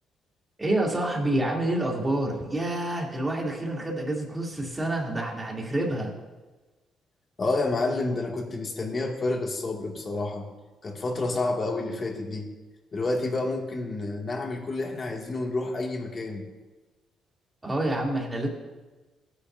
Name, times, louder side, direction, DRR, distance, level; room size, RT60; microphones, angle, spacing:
voice 1, 0.6-6.1 17.6-18.5, right 1 dB, 20° right, -3 dB, 3.1 m, -28 dB
voice 2, 7.4-10.5 10.8-12.5 12.9-16.4, left 2 dB, 40° left, 0 dB, 2.3 m, -29 dB
16.5 x 10.0 x 2.7 m, 1.2 s
cardioid pair, 90°, 0 cm